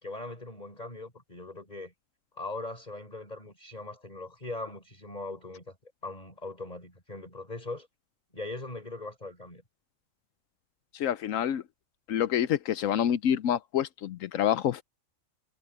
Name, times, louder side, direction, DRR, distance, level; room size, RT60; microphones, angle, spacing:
voice 1, 0.0-1.9 2.4-7.9 8.3-9.6, left 2 dB, 30° left, 4.8 m, -40 dB
voice 2, 10.9-11.6 12.1-14.8, left 10 dB, 80° left, 1.1 m, -27 dB
omnidirectional pair, 1.3 m